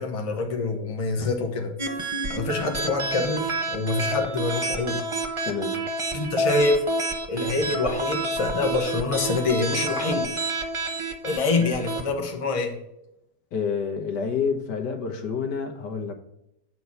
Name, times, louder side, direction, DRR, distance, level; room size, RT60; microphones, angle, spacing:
voice 1, 0.0-1.7 2.3-5.0 6.1-6.8 7.3-10.3 11.2-12.8, left 3 dB, 25° left, 3 dB, 0.9 m, -26 dB
sound 1, 1.8-12.0, right 2 dB, 40° right, 0.4 m, -29 dB
voice 2, 5.4-5.8 13.5-16.1, left 6 dB, 80° left, 4 dB, 1.6 m, -28 dB
8.0 x 4.5 x 5.7 m, 0.83 s
omnidirectional pair, 1.8 m